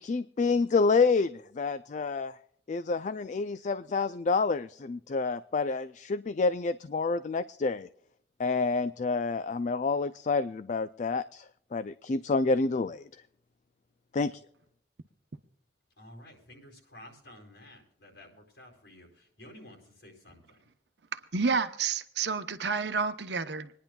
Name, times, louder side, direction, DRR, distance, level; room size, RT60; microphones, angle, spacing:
voice 1, 0.0-2.4 2.7-7.9 8.4-11.4 11.7-13.1 14.1-14.4, left 4 dB, 45° left, 0.4 m, -28 dB
voice 2, 16.0-20.6, left 1 dB, 80° left, 4.4 m, -52 dB
voice 3, 21.1-23.7, right 5 dB, 70° right, 0.9 m, -30 dB
26.0 x 10.5 x 2.3 m
head